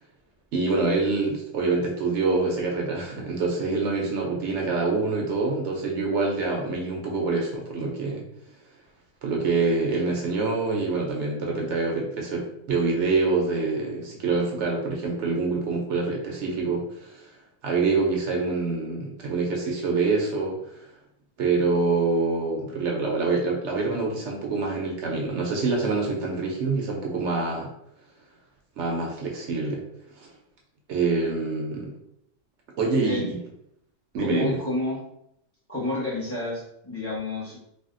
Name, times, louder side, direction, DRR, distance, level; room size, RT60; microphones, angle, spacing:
voice 1, 0.5-8.2 9.2-17.3 17.6-20.8 21.4-27.7 28.8-29.8 30.2-30.3 30.9-31.9 32.8-33.4 34.1-34.5, right 3 dB, 70° right, 0 dB, 0.8 m, -26 dB
voice 2, 34.2-35.0 35.7-37.6, left 2 dB, 15° left, -6 dB, 0.7 m, -30 dB
3.4 x 2.2 x 2.5 m, 0.76 s
omnidirectional pair, 1.3 m